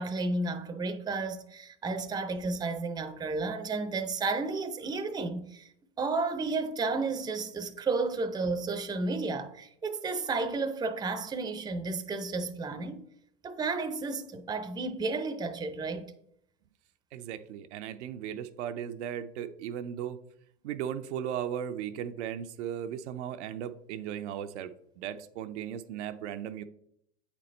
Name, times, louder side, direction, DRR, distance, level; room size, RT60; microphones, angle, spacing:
voice 1, 0.0-5.7 6.0-13.0 13.4-16.1, right 3 dB, 10° right, 0.5 m, -32 dB
voice 2, 17.1-20.2 20.6-24.7 25.0-26.6, right 9 dB, 70° right, 0.6 m, -36 dB
8.4 x 4.2 x 3.2 m
hypercardioid pair, 90°, 36 cm